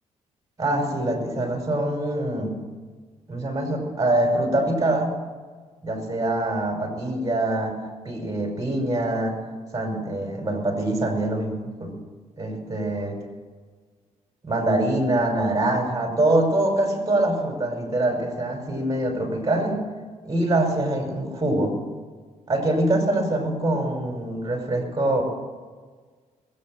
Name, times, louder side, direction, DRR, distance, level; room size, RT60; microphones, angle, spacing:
voice 1, 0.6-2.6 3.3-5.2 5.8-9.4 9.7-11.9 12.4-13.2 14.4-19.8 20.2-21.8 22.5-25.2, right 1 dB, 25° right, 2 dB, 5.5 m, -24 dB
20.5 x 8.7 x 7.8 m, 1.5 s
cardioid pair, 65°, 14 cm